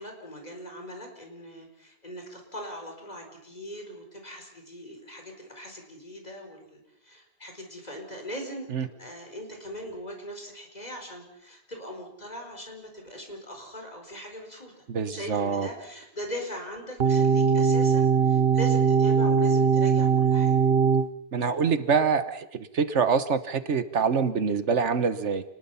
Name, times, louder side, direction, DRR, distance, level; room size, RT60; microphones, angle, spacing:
voice 1, 0.0-14.8 15.1-20.6 21.4-21.7, equal, 35° left, 3 dB, 4.7 m, -40 dB
voice 2, 14.9-15.7 21.3-22.5 22.7-25.4, right 5 dB, 80° right, 12 dB, 1.5 m, -25 dB
sound 1, 17.0-21.1, right 6 dB, 60° right, 1.2 m, -21 dB
29.0 x 20.5 x 5.8 m, 0.79 s
omnidirectional pair, 1.2 m